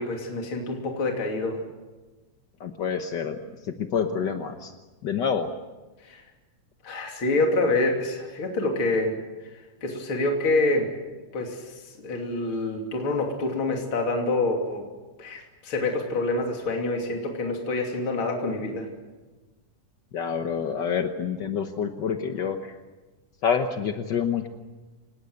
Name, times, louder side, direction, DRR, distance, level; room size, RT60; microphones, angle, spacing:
voice 1, 0.0-1.6 6.0-6.2 6.8-9.1 9.8-10.9 11.3-14.9 15.2-18.9, left 2 dB, 45° left, 1 dB, 3.6 m, -26 dB
voice 2, 2.6-4.7 5.0-5.5 20.1-22.8 23.4-24.5, left 7 dB, 60° left, 6 dB, 1.1 m, -27 dB
29.0 x 18.5 x 8.0 m, 1.2 s
omnidirectional pair, 3.5 m